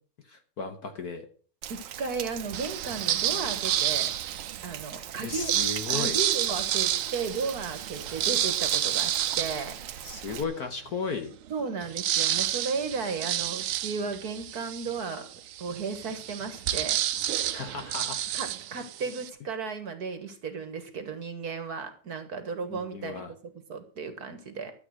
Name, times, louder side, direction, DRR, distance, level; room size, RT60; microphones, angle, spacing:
voice 1, 0.2-1.3 5.2-6.2 10.0-11.3 17.5-18.3 22.7-23.3, left 4 dB, 55° left, 7 dB, 1.3 m, -35 dB
Rain, 1.6-10.4, right 10 dB, 65° right, 1.4 m, -42 dB
voice 2, 1.7-4.1 4.6-5.5 5.9-9.8 11.5-15.3 15.6-17.0 18.3-23.2 23.7-24.7, right 5 dB, 50° right, 9 dB, 1.7 m, -34 dB
sound 1, 2.5-4.7 5.3-10.5 11.0-11.1 11.3-19.3, right 12 dB, 80° right, 1.6 m, -30 dB
12.5 x 7.8 x 6.3 m, 0.43 s
omnidirectional pair, 2.4 m